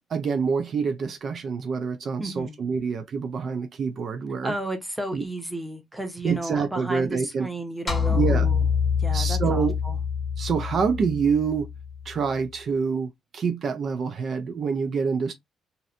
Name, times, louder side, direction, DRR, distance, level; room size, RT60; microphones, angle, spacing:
voice 1, 0.0-4.5 5.1-5.2 6.2-7.5 8.1-8.5 9.1-9.8 10.4-11.7 12.1-15.3, right 5 dB, 55° right, 0.4 m, -26 dB
voice 2, 2.2-2.6 4.4-8.6 9.0-10.0, right 1 dB, 5° right, 0.8 m, -33 dB
sound 1, 7.9-12.3, left 6 dB, 25° left, 0.8 m, -26 dB
2.6 x 2.1 x 2.5 m
cardioid pair, 90°, 0 cm